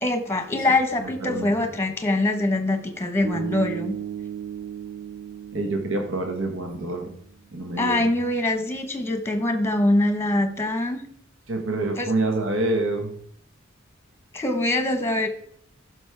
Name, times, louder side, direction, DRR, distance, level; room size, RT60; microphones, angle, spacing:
voice 1, 0.0-3.9 7.8-11.0 12.0-12.1 14.3-15.3, left 2 dB, 15° left, 7 dB, 1.2 m, -23 dB
voice 2, 1.0-1.5 5.5-7.1 7.5-8.1 11.5-13.1, right 2 dB, 70° right, 3 dB, 1.1 m, -27 dB
Bass guitar, 3.2-7.3, right 8 dB, 45° right, 2.0 m, -36 dB
14.0 x 6.1 x 3.5 m, 0.64 s
head